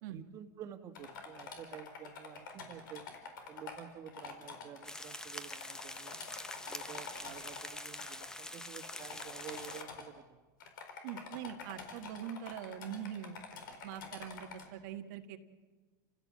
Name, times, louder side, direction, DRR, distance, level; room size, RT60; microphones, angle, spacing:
voice 1, 0.1-3.0 3.5-6.1 6.7-10.4, right 9 dB, 30° right, 6 dB, 1.9 m, -50 dB
sound 1, 1.0-4.9 5.5-8.3 8.8-10.1 10.6-14.7, left 5 dB, 80° left, 4.3 m, -47 dB
sound 2, 4.8-9.8, left 2 dB, 5° left, 0.9 m, -45 dB
voice 2, 11.0-13.4 13.8-15.4, right 9 dB, 60° right, 6 dB, 1.7 m, -43 dB
30.0 x 16.0 x 7.6 m, 1.3 s
supercardioid pair, 145°, 11 cm